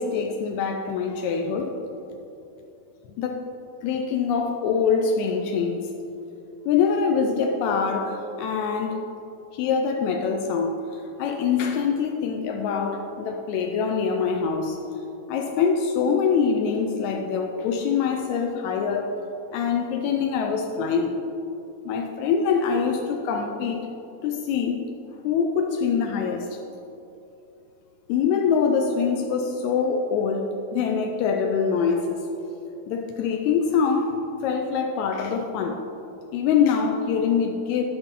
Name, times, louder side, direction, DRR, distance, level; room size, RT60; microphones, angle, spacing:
voice 1, 0.0-1.8 3.2-3.5 3.8-5.9 6.6-9.0 9.5-14.8 15.3-19.2 19.5-21.2 21.8-23.9 24.2-24.8 25.2-26.6 28.1-32.3 32.9-35.8 36.3-37.8, left 6 dB, 85° left, 3 dB, 1.6 m, -24 dB
12.5 x 6.0 x 3.7 m, 2.8 s
omnidirectional pair, 3.9 m